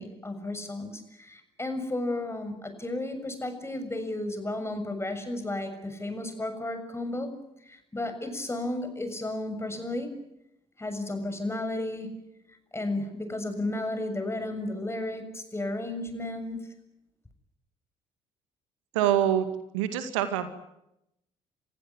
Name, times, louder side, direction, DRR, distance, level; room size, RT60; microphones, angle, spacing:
voice 1, 0.0-7.3 7.7-10.2 10.8-12.2 12.7-16.6, left 2 dB, 15° left, 7 dB, 6.9 m, -33 dB
voice 2, 18.9-19.5 19.7-20.5, right 11 dB, 85° right, 9 dB, 2.1 m, -25 dB
29.0 x 15.5 x 9.8 m, 0.82 s
hypercardioid pair, 55°, 16 cm